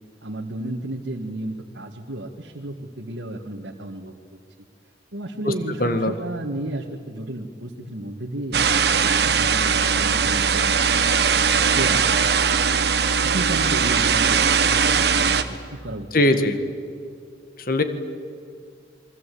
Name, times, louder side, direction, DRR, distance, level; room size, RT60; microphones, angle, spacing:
voice 1, 0.2-4.4 5.1-12.7 13.2-16.4, right 1 dB, 80° right, 0 dB, 1.7 m, -33 dB
voice 2, 5.8-6.2 16.1-16.6 17.6-17.8, left 1 dB, 50° left, 9 dB, 1.8 m, -20 dB
sound 1, 8.5-15.4, right 6 dB, 60° right, 1.3 m, -20 dB
28.0 x 23.5 x 8.5 m, 2.3 s
head